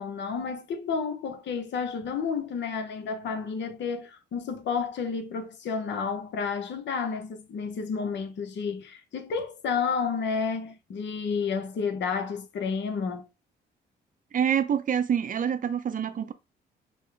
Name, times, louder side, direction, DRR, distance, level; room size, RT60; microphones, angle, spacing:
voice 1, 0.0-13.3, left 5 dB, 65° left, 0.9 m, -31 dB
voice 2, 14.3-16.3, right 8 dB, 40° right, 0.6 m, -26 dB
5.5 x 2.2 x 3.4 m
cardioid pair, 90°, 20 cm